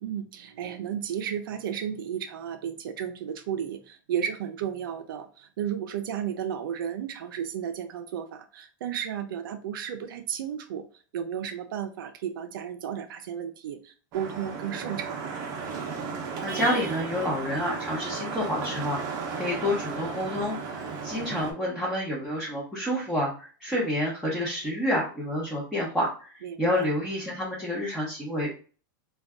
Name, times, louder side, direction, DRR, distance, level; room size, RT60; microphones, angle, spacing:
voice 1, 0.0-10.9 11.1-15.4 26.4-26.9, right 9 dB, 80° right, 6 dB, 0.4 m, -33 dB
Vehicle horn car horn honking / Traffic noise roadway noise, 14.1-21.5, right 5 dB, 35° right, 0.6 m, -34 dB
voice 2, 16.4-19.0 19.3-28.6, left 1 dB, 5° left, -6 dB, 0.7 m, -29 dB
2.6 x 2.2 x 3.4 m, 0.38 s
supercardioid pair, 155°, 11 cm